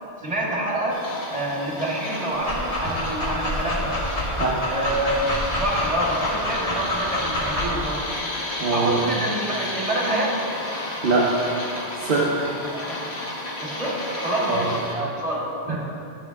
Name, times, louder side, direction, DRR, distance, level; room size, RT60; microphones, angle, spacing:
voice 1, 0.2-1.0 1.3-4.0 4.7-5.2 5.5-8.0 8.7-10.3 12.6-13.0 13.6-15.8, right 1 dB, 30° right, -5 dB, 2.0 m, -27 dB
sound 1, 0.9-14.9, left 1 dB, 70° left, 1.6 m, -32 dB
Dog, 2.3-7.8, left 1 dB, 35° left, 1.7 m, -27 dB
voice 2, 8.6-9.0 11.0-11.4 12.0-12.5 14.5-14.7 15.7-15.8, right 3 dB, 55° right, -4 dB, 1.1 m, -22 dB
10.5 x 9.0 x 3.5 m, 2.6 s
omnidirectional pair, 1.1 m